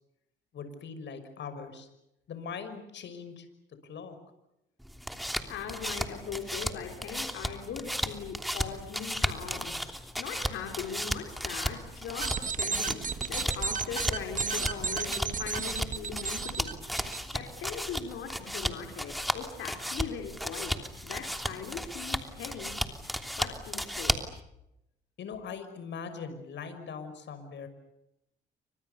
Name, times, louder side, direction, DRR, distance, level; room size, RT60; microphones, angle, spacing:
voice 1, 0.5-1.9 2.3-3.5 3.8-4.2 25.2-27.7, left 6 dB, 65° left, 9 dB, 5.9 m, -41 dB
sound 1, 4.8-24.4, equal, ahead, 3.1 m, -35 dB
voice 2, 5.5-16.7 17.0-20.8 21.0-22.9 23.4-24.2, left 7 dB, 85° left, 3 dB, 4.6 m, -40 dB
sound 2, 12.1-17.2, right 5 dB, 40° right, 2.0 m, -33 dB
29.5 x 25.5 x 6.9 m, 0.85 s
cardioid pair, 90°, 20 cm